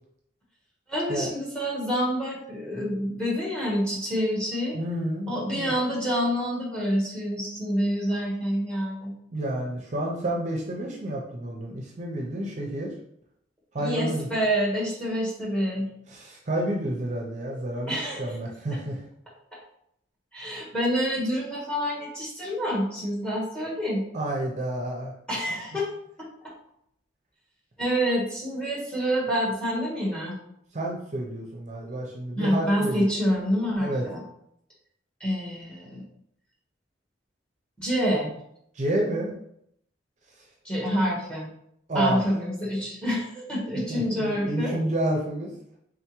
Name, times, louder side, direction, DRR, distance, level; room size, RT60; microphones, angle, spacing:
voice 1, 0.9-4.8 5.3-9.1 13.8-15.9 17.9-18.4 18.7-18.8 20.3-24.0 25.3-25.9 26.2-26.5 27.8-30.3 32.3-34.2 35.2-36.0 37.8-38.3 40.6-41.5 41.9-44.8, equal, 5° left, -4 dB, 1.2 m, -27 dB
voice 2, 4.7-5.7 9.3-13.0 13.7-14.3 16.1-19.0 24.1-25.1 30.7-33.1 33.8-34.0 38.7-39.3 41.9-42.3 43.7-45.5, right 1 dB, 40° right, -1 dB, 0.6 m, -30 dB
3.7 x 3.4 x 3.0 m, 0.73 s
head